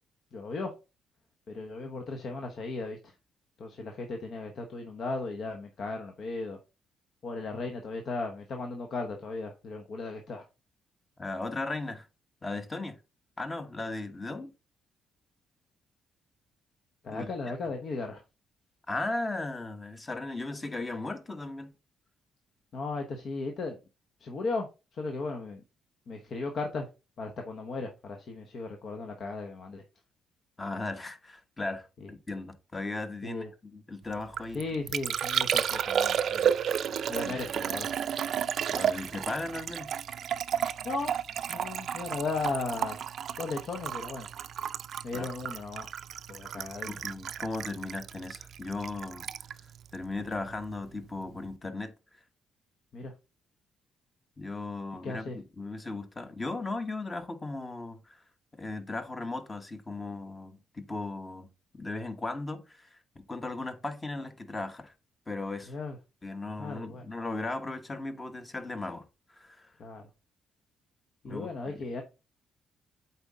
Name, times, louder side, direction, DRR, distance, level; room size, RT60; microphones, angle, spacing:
voice 1, 0.3-0.7 1.5-3.1 3.6-6.6 7.2-10.5 17.0-18.2 22.7-23.8 24.2-25.6 26.1-26.9 27.2-29.8 32.0-32.1 33.2-33.5 34.5-36.6 37.1-37.9 40.8-41.1 41.5-43.0 43.4-44.3 45.0-45.9 46.3-46.9 52.9-53.1 55.0-55.4 65.7-66.0 66.6-67.0 69.8-70.0 71.2-72.0, left 3 dB, 60° left, 1.0 m, -36 dB
voice 2, 11.2-12.1 12.4-13.0 13.4-14.5 17.1-17.3 18.9-21.7 30.6-34.6 37.2-37.3 38.7-39.9 45.1-45.3 46.9-49.3 49.9-51.9 54.4-58.2 58.5-64.9 65.3-65.7 66.2-69.1 69.3-69.7 71.2-71.8, left 2 dB, 25° left, 1.1 m, -37 dB
Liquid, 34.1-50.8 51.0-51.5, right 8 dB, 65° right, 0.4 m, -32 dB
8.0 x 4.2 x 3.6 m
cardioid pair, 90°, 0 cm